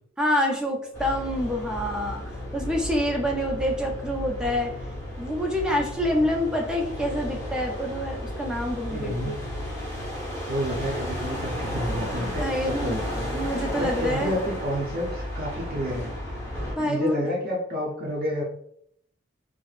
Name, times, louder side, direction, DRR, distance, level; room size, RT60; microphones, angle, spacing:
voice 1, 0.2-4.7 5.2-9.4 12.2-13.0 13.3-14.3 16.8-17.2, left 1 dB, 5° right, 0 dB, 0.5 m, -27 dB
sound 1, 0.9-16.8, equal, 15° left, 1.0 m, -33 dB
voice 2, 8.9-9.3 10.5-16.1 16.8-18.4, equal, 50° right, -5 dB, 0.6 m, -30 dB
4.8 x 2.0 x 2.4 m, 0.69 s
head